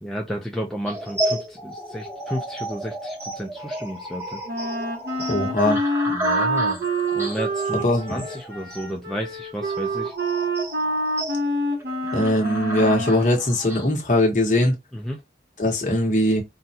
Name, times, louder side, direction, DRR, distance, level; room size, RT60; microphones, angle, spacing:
voice 1, 0.0-4.4 6.1-6.8 7.1-7.8 8.1-10.1 14.9-15.2, equal, ahead, 0.4 m, -32 dB
sound 1, 0.9-13.9, right 1 dB, 15° right, 0.9 m, -33 dB
Wind instrument woodwind instrument, 4.5-13.3, right 1 dB, 65° right, 1.0 m, -26 dB
voice 2, 5.3-5.8 7.7-8.2 12.1-14.8 15.6-16.4, left 1 dB, 45° left, 1.1 m, -21 dB
3.9 x 2.2 x 2.7 m
head